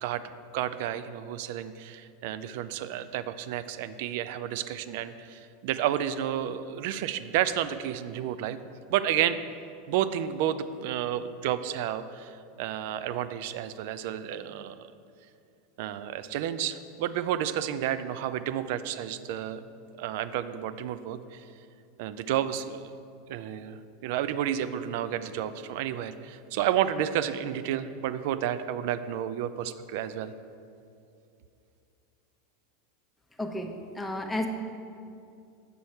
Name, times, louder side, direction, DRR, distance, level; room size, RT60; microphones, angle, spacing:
voice 1, 0.5-8.6 8.9-9.4 9.9-14.9 15.8-19.6 20.0-21.5 22.0-22.9 23.3-30.3, right 10 dB, 65° right, 13 dB, 0.4 m, -31 dB
voice 2, 33.4-34.5, left 1 dB, 10° left, 3 dB, 0.8 m, -32 dB
6.9 x 6.3 x 4.3 m, 2.5 s
hypercardioid pair, 105°, 0 cm